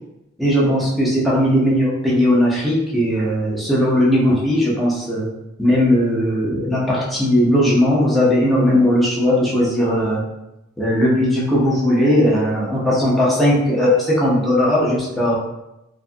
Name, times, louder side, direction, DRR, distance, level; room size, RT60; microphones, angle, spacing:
voice 1, 0.4-5.3 5.6-10.2 10.8-15.4, equal, ahead, -7 dB, 0.5 m, -17 dB
2.5 x 2.4 x 2.4 m, 0.91 s
head